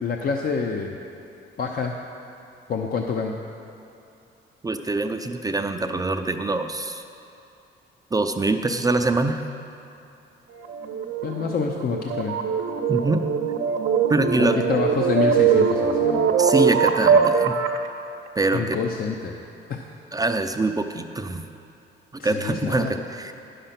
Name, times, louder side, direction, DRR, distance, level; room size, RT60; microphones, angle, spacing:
voice 1, 0.0-0.9 1.6-1.9 2.7-3.4 11.2-12.4 14.4-16.3 18.5-19.3 19.7-19.9 22.2-22.9, left 5 dB, 50° left, 2 dB, 0.6 m, -27 dB
voice 2, 4.6-7.0 8.1-9.5 12.9-13.2 14.1-14.6 16.4-17.5 18.4-18.8 20.1-21.5 22.2-23.3, right 2 dB, 20° right, 6 dB, 0.4 m, -24 dB
sound 1, 10.5-17.9, right 6 dB, 80° right, 0.7 m, -22 dB
10.0 x 6.6 x 5.8 m, 2.6 s
cardioid pair, 90°, 20 cm